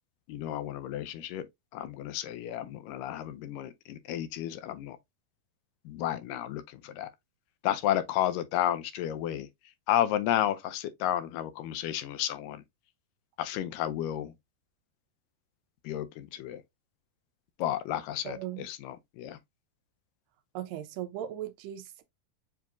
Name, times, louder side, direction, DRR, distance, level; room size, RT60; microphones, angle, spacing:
voice 1, 0.3-1.5 1.7-5.0 5.9-7.1 7.6-9.5 9.9-12.6 13.4-14.3 15.8-16.6 17.6-19.4, left 12 dB, 80° left, 2.2 m, -32 dB
voice 2, 18.3-18.7 20.5-22.0, right 12 dB, 85° right, 2.2 m, -38 dB
7.0 x 2.8 x 2.3 m
omnidirectional pair, 3.9 m